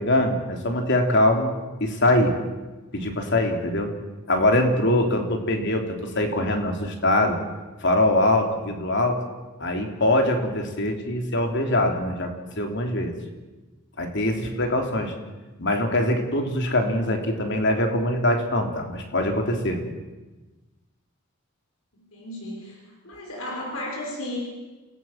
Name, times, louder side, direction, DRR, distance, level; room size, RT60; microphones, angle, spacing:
voice 1, 0.0-1.5 1.8-2.4 2.9-3.9 4.3-7.4 7.8-9.2 9.6-13.1 14.0-15.1 15.6-19.8, left 1 dB, 55° left, 4 dB, 3.5 m, -23 dB
voice 2, 21.9-22.8 23.0-24.4, left 1 dB, 75° left, -1 dB, 5.8 m, -34 dB
29.0 x 17.0 x 7.5 m, 1.2 s
head